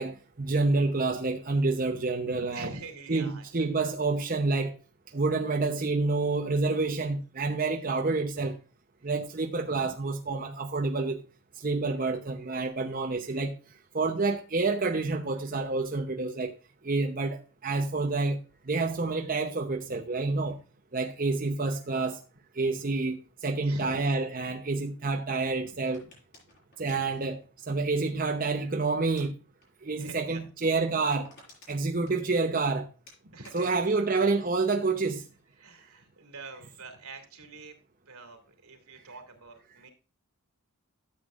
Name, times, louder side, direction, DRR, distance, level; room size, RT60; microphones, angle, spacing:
voice 1, 0.0-2.7 3.1-4.7 5.1-8.6 9.0-11.2 11.6-13.6 13.9-16.5 16.8-18.4 18.7-20.6 20.9-22.2 22.5-26.0 26.8-27.4 27.7-29.3 29.8-31.3 31.7-32.9 33.5-35.2, right 3 dB, 40° right, 0.8 m, -28 dB
voice 2, 2.3-3.8 9.0-9.1 9.6-10.0 19.9-20.6 23.6-24.0 25.5-26.1 26.8-27.2 29.9-30.4 33.2-34.0 35.5-37.8 38.1-39.9, right 3 dB, 80° right, 2.7 m, -46 dB
sound 1, 25.9-28.4 29.0-29.3 29.6-29.8 30.1-30.2 30.6-30.7 31.0-32.6 33.1-35.1 35.4-35.8, left 2 dB, 50° left, 6.3 m, -56 dB
13.0 x 8.0 x 2.5 m
head